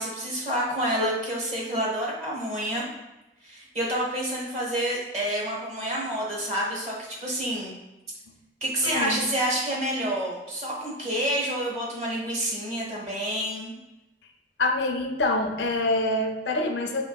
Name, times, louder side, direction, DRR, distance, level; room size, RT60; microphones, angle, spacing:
voice 1, 0.0-2.9 3.4-7.7 8.6-13.7, right 1 dB, 40° right, -4 dB, 1.0 m, -28 dB
voice 2, 8.8-9.2 14.6-17.0, left 2 dB, 75° left, 4 dB, 0.4 m, -26 dB
4.3 x 3.1 x 2.2 m, 0.98 s
head